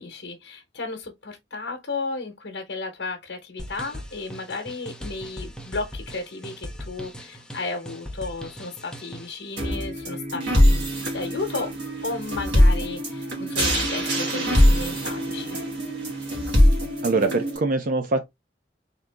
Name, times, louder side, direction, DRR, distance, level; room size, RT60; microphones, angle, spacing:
voice 1, 0.0-11.7 12.0-15.6, left 3 dB, 70° left, 0.9 m, -34 dB
sound 1, 3.6-9.4, equal, 5° left, 0.7 m, -39 dB
sound 2, 9.6-17.6, equal, 80° right, 1.7 m, -22 dB
voice 2, 17.0-18.3, right 3 dB, 50° right, 0.5 m, -23 dB
3.6 x 2.8 x 3.4 m
head